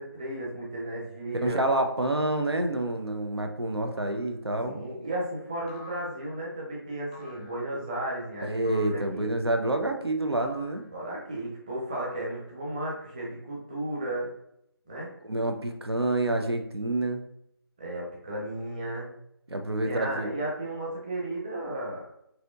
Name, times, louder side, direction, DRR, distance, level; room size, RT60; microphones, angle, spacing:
voice 1, 0.0-1.6 4.7-9.3 10.9-14.3 14.9-15.1 17.8-19.1 19.8-22.0, right 1 dB, 20° right, -4 dB, 0.9 m, -34 dB
voice 2, 1.4-4.8 8.4-10.8 15.2-17.2 19.5-20.3, right 2 dB, 85° right, 5 dB, 0.8 m, -28 dB
sound 1, 4.0-4.4 5.7-6.5 7.1-7.7 8.6-9.2 10.4-10.9 11.9-12.7, left 2 dB, 20° left, 0.5 m, -50 dB
6.1 x 2.8 x 2.6 m, 0.76 s
figure-of-eight pair, 165°, 13 cm